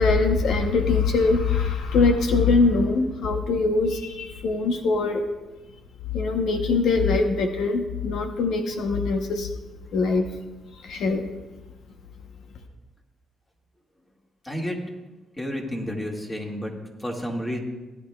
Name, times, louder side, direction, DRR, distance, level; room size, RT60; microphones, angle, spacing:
voice 1, 0.0-5.2 6.1-9.5 9.9-10.3 10.8-11.3, left 4 dB, 75° left, 5 dB, 0.9 m, -22 dB
voice 2, 14.4-14.8 15.4-16.7 17.0-17.6, equal, 15° left, 0 dB, 2.1 m, -30 dB
18.0 x 10.5 x 2.4 m, 1.1 s
cardioid pair, 90°, 0 cm